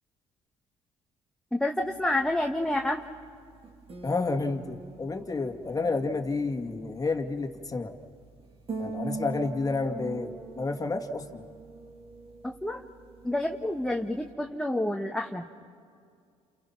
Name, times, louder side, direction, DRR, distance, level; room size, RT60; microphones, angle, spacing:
voice 1, 1.5-3.0 12.4-12.8 13.2-15.4, left 1 dB, 5° left, 2 dB, 1.4 m, -29 dB
sound 1, 1.8-14.3, right 3 dB, 40° right, 3.4 m, -43 dB
voice 2, 4.0-7.9 8.8-11.4, left 3 dB, 25° left, 5 dB, 2.2 m, -30 dB
29.5 x 29.0 x 5.9 m, 2.3 s
supercardioid pair, 70°, 14 cm